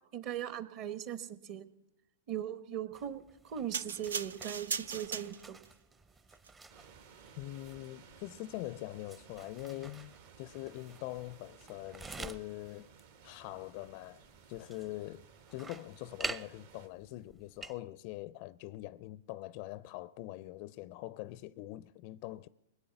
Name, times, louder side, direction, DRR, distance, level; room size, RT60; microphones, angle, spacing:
voice 1, 0.0-1.7 2.3-5.6, right 10 dB, 45° right, 1.2 m, -39 dB
sound 1, 2.9-17.8, right 3 dB, 15° right, 0.7 m, -49 dB
sound 2, 3.7-5.7 6.4-6.5, right 5 dB, 80° right, 0.6 m, -38 dB
sound 3, 6.7-16.9, right 6 dB, 65° right, 1.9 m, -58 dB
voice 2, 7.4-12.9 13.2-15.3 15.5-22.5, left 16 dB, 50° left, 0.4 m, -43 dB
20.5 x 8.2 x 7.0 m
hypercardioid pair, 110°, 0 cm